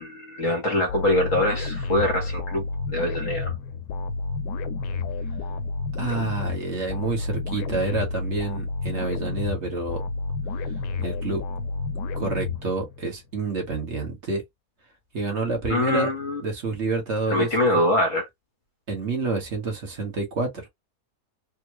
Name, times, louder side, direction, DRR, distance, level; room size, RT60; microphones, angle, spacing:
voice 1, 0.0-3.5 15.7-16.4 17.3-18.3, left 1 dB, 55° left, 1.4 m, -24 dB
sound 1, 0.9-13.2, left 3 dB, 85° left, 1.2 m, -30 dB
voice 2, 6.0-10.0 11.0-11.4 12.2-14.4 15.1-16.1 16.4-17.5 18.9-20.7, right 3 dB, 45° right, 1.4 m, -28 dB
3.6 x 2.2 x 2.9 m
omnidirectional pair, 1.7 m